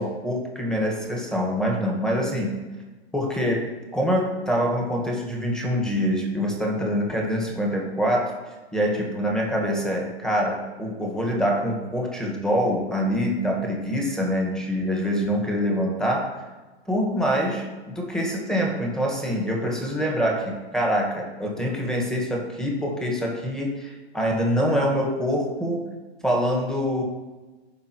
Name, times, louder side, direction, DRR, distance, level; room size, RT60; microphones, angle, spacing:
voice 1, 0.0-2.6 3.1-8.3 8.7-16.3 16.9-25.9 26.2-27.0, equal, ahead, -2 dB, 1.6 m, -25 dB
15.0 x 5.1 x 3.1 m, 1.2 s
hypercardioid pair, 125°, 35 cm